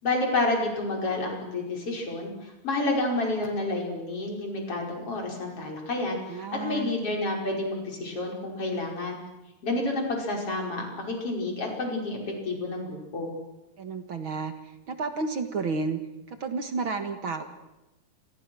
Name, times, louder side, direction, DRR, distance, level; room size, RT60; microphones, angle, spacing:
voice 1, 0.0-9.2 9.6-12.2 12.4-13.3, left 2 dB, 45° left, 1 dB, 6.3 m, -29 dB
voice 2, 6.3-6.9 13.8-14.5 14.9-16.0 16.3-17.4, right 4 dB, 45° right, 8 dB, 2.0 m, -31 dB
29.5 x 24.0 x 6.3 m, 0.99 s
omnidirectional pair, 3.7 m